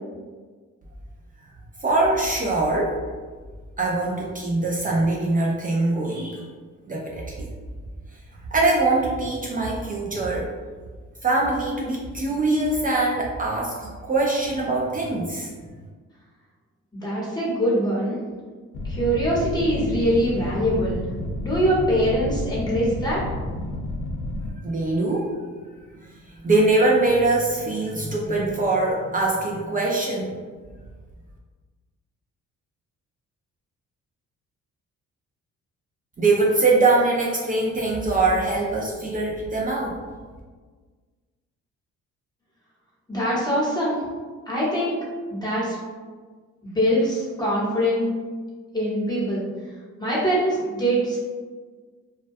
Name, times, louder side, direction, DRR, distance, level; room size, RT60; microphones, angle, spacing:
voice 1, 1.8-2.9 3.8-6.4 6.9-7.5 8.5-10.5 11.2-15.5 24.6-25.3 26.4-30.4 36.2-39.9, right 2 dB, 30° right, -3 dB, 0.4 m, -22 dB
voice 2, 17.0-18.2 18.8-21.0 21.4-23.2 43.1-44.0 44.5-45.0 45.3-45.8 46.6-48.1 48.7-49.4 50.0-51.2, equal, 15° left, -7 dB, 0.9 m, -23 dB
sound 1, 18.7-24.5, left 1 dB, 40° left, 0.4 m, -30 dB
2.2 x 2.2 x 2.5 m, 1.5 s
cardioid pair, 90°, 30 cm